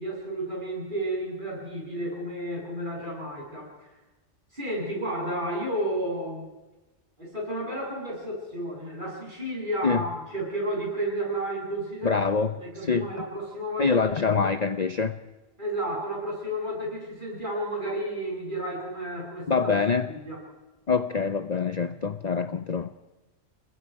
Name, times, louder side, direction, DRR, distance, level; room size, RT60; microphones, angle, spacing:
voice 1, 0.0-3.9 4.5-6.5 7.2-12.2 12.6-14.5 15.6-19.8 20.1-20.4, right 1 dB, 40° right, -3 dB, 8.2 m, -32 dB
voice 2, 12.0-13.3 13.8-15.2 19.5-20.1 20.9-22.9, left 5 dB, 40° left, 10 dB, 0.7 m, -25 dB
29.0 x 21.0 x 4.7 m, 1.1 s
omnidirectional pair, 1.4 m